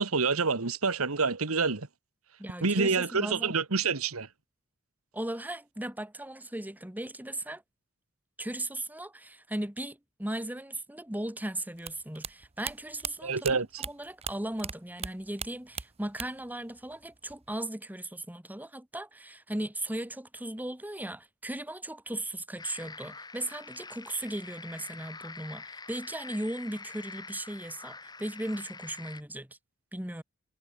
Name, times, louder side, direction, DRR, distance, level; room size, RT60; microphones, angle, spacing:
voice 1, 0.0-1.9 2.6-4.3 13.2-13.8, right 4 dB, 80° right, 1.6 m, -27 dB
voice 2, 2.4-3.5 5.1-7.6 8.4-29.6 29.9-30.2, right 1 dB, 10° right, 1.7 m, -37 dB
sound 1, 11.8-14.7 15.0-16.5 16.8-17.5, right 7 dB, 30° right, 1.0 m, -38 dB
sound 2, 22.6-29.2, left 4 dB, 20° left, 2.3 m, -46 dB
head